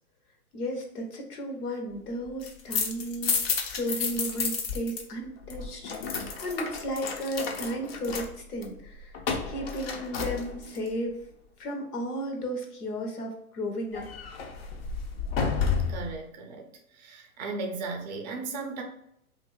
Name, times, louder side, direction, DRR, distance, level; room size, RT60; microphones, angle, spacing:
voice 1, 0.5-11.2 11.6-14.1, equal, 80° left, 3 dB, 0.9 m, -34 dB
sound 1, 2.3-5.0 5.3-10.9 13.9-16.2, left 5 dB, 45° left, 0.5 m, -31 dB
voice 2, 15.9-18.8, right 3 dB, 30° right, 2 dB, 0.5 m, -36 dB
2.6 x 2.5 x 3.0 m, 0.76 s
hypercardioid pair, 120°, 45 cm